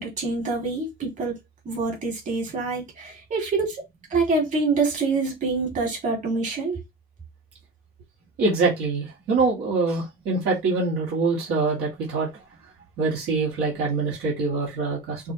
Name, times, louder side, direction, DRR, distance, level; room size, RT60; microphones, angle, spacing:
voice 1, 0.0-1.3 1.7-3.8 4.1-6.8, right 3 dB, 45° right, 2.5 m, -26 dB
voice 2, 8.4-12.3 13.0-15.3, right 3 dB, 80° right, 2.1 m, -24 dB
5.9 x 2.6 x 3.0 m
cardioid pair, 110°, 17 cm